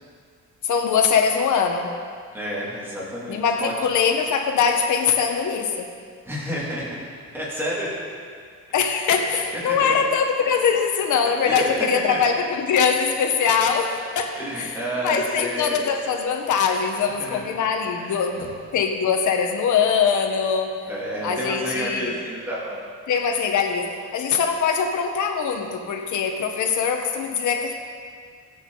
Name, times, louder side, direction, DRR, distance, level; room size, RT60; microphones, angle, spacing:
voice 1, 0.6-1.9 3.3-5.9 8.7-14.7 15.0-18.5 18.7-20.7 21.2-22.1 23.1-27.7, left 6 dB, 75° left, 3 dB, 1.6 m, -22 dB
voice 2, 2.3-3.7 6.2-7.0 7.3-7.9 9.3-9.4 9.7-9.8 11.4-11.6 12.1-12.2 14.3-15.8 17.2-17.4 18.0-18.5 20.9-22.8, equal, 10° right, -7 dB, 3.1 m, -30 dB
22.0 x 8.5 x 4.1 m, 2.1 s
cardioid pair, 180°, 30 cm